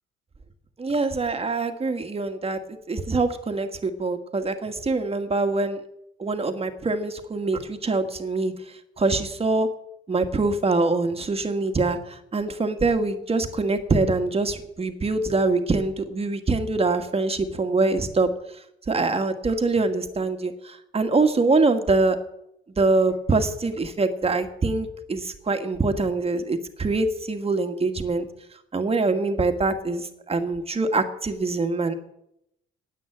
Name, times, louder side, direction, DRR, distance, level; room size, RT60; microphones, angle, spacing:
voice 1, 0.8-5.8 6.2-8.5 9.0-9.7 10.1-18.3 18.9-22.2 22.8-28.3 28.7-31.9, right 3 dB, 30° right, 7 dB, 1.6 m, -24 dB
9.4 x 9.2 x 9.2 m, 0.80 s
cardioid pair, 90°, 20 cm